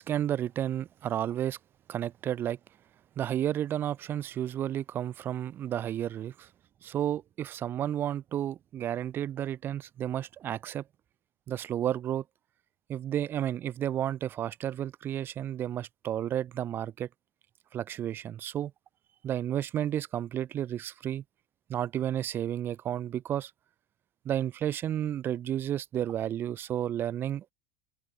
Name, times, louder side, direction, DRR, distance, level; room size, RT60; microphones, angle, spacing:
voice 1, 0.0-1.6 1.9-2.6 3.2-6.5 6.8-10.8 11.5-12.2 12.9-17.1 17.7-18.7 19.2-21.2 21.7-23.5 24.2-27.4, right 11 dB, 30° right, 0.6 m, -32 dB
supercardioid pair, 145°, 8 cm